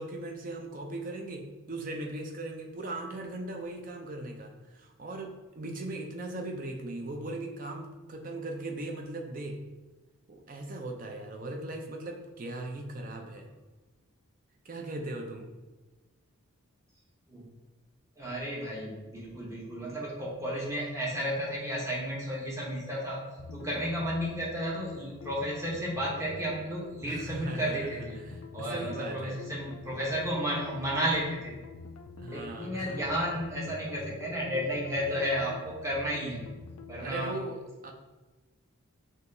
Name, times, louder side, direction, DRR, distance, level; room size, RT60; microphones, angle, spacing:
voice 1, 0.0-9.6 10.3-13.5 14.6-15.5 27.0-29.4 32.2-33.0 37.0-37.9, right 2 dB, 40° right, 3 dB, 0.5 m, -38 dB
voice 2, 18.2-23.2 23.5-28.2 28.5-31.6 32.3-36.5 36.9-37.3, equal, 15° right, -4 dB, 0.8 m, -33 dB
sound 1, 23.4-37.1, left 4 dB, 90° left, 0.4 m, -46 dB
6.4 x 2.8 x 2.6 m, 1.2 s
head